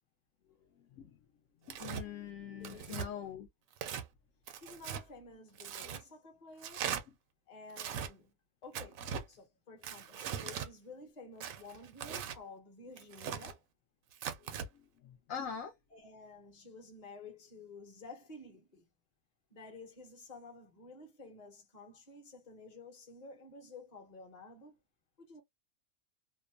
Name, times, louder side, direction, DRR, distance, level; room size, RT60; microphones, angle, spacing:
voice 1, 1.7-3.5 7.1-7.2 14.4-14.5 14.7-15.8, left 7 dB, 70° left, 0.9 m, -43 dB
Tearing, 1.7-2.0 2.6-3.1 3.7-4.1 4.5-5.0 5.6-6.0 6.6-7.0 7.7-8.1 8.7-9.2 9.8-10.7 11.4-12.4 13.0-13.5 14.1-14.7, right 8 dB, 70° right, 0.9 m, -40 dB
voice 2, 2.6-3.3 4.6-6.9 7.5-8.3 8.6-9.0 9.3-13.6 15.9-18.9 19.5-24.8 25.2-25.4, left 3 dB, 30° left, 1.0 m, -52 dB
2.8 x 2.1 x 2.3 m
omnidirectional pair, 1.5 m